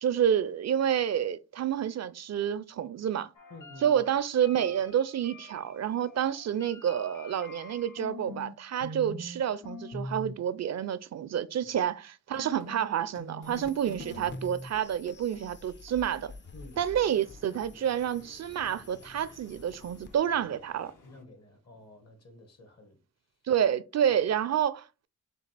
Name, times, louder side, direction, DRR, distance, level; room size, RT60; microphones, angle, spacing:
voice 1, 0.0-3.3 3.8-16.3 16.8-20.9 23.5-25.1, right 9 dB, 55° right, 0.4 m, -29 dB
sound 1, 3.3-8.5 8.8-9.4 9.6-10.3 12.3-21.2, left 1 dB, 75° left, 1.5 m, -46 dB
voice 2, 3.5-4.0 11.6-11.8 16.5-16.8 21.0-23.0 24.0-24.1, left 2 dB, 50° left, 1.3 m, -50 dB
sound 2, 13.4-20.2, left 4 dB, 35° left, 0.6 m, -49 dB
6.5 x 2.4 x 3.3 m
cardioid pair, 75°, 32 cm